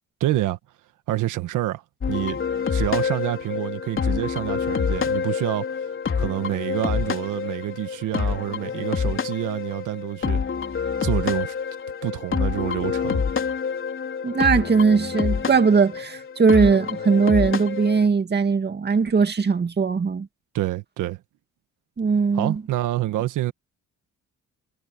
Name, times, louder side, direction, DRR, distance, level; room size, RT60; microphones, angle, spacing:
voice 1, 0.2-0.6 1.1-2.4 2.7-5.8 6.2-10.4 11.0-11.5 12.0-13.3 20.5-21.2 22.3-23.5, right 14 dB, 85° right, 1.6 m, -27 dB
sound 1, 2.0-18.0, left 6 dB, 40° left, 4.0 m, -27 dB
voice 2, 14.2-20.3 22.0-22.6, right 5 dB, 35° right, 2.3 m, -20 dB
cardioid pair, 90°, 30 cm